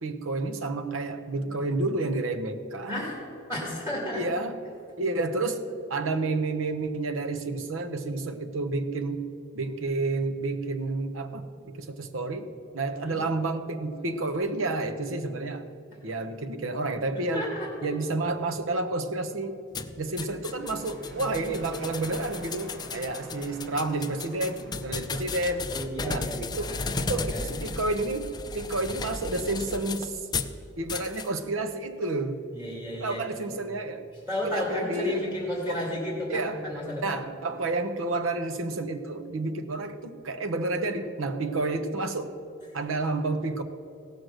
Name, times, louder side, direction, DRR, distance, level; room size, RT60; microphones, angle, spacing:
voice 1, 0.0-3.0 4.1-4.6 5.0-9.3 9.5-12.5 12.7-15.7 16.0-17.5 17.8-19.6 20.0-25.7 26.0-26.3 26.5-26.7 27.0-30.3 30.8-32.4 33.0-34.0 34.4-35.3 35.7-35.8 36.3-36.6 37.0-42.3 42.7-43.6, right 2 dB, 90° right, 8 dB, 0.9 m, -30 dB
voice 2, 3.5-4.3 13.0-13.2 15.9-16.0 17.1-17.9 22.9-23.1 25.7-27.6 32.5-33.2 34.3-37.5, equal, 15° right, -3 dB, 2.2 m, -33 dB
sound 1, 19.7-30.5 30.9-31.3, left 4 dB, 20° left, 0.4 m, -35 dB
sound 2, 20.5-26.2, right 1 dB, 50° right, 1.9 m, -46 dB
16.5 x 6.3 x 6.5 m, 2.6 s
head